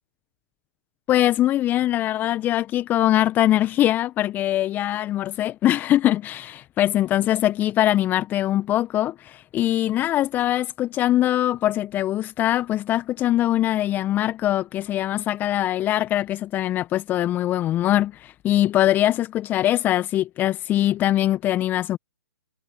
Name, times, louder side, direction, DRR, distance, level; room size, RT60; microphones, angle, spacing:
voice 1, 1.1-22.0, left 13 dB, 20° left, 1.6 m, -22 dB
figure-of-eight pair, 120°, 9 cm